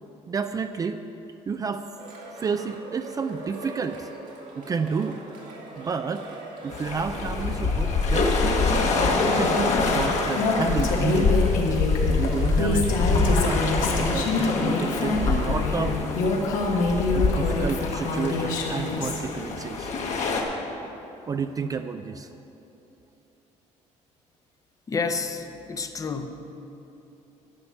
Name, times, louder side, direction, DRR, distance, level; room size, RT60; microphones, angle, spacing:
voice 1, 0.3-1.0 1.5-1.9 2.4-4.1 4.6-5.2 5.8-6.3 6.6-8.9 9.2-11.3 12.1-16.1 17.1-19.9 21.3-22.3, right 5 dB, 25° right, 8 dB, 0.4 m, -30 dB
Cheering, 1.9-15.8, right 2 dB, 75° right, 2.1 m, -42 dB
sound 1, 6.7-20.4, left 3 dB, 60° left, 1.5 m, -25 dB
Female speech woman speaking, 10.4-19.2, left 3 dB, 80° left, 1.5 m, -26 dB
voice 2, 24.9-26.3, left 4 dB, 25° left, 7 dB, 0.7 m, -29 dB
11.0 x 5.6 x 8.7 m, 2.9 s
cardioid pair, 130°, 13 cm